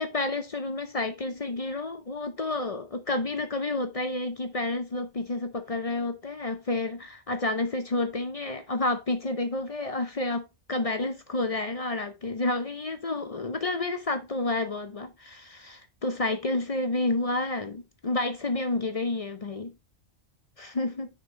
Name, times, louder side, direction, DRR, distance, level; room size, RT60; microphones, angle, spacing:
voice 1, 0.0-19.7 20.6-21.1, left 2 dB, 40° left, 0.6 m, -30 dB
6.7 x 5.3 x 3.1 m
omnidirectional pair, 1.1 m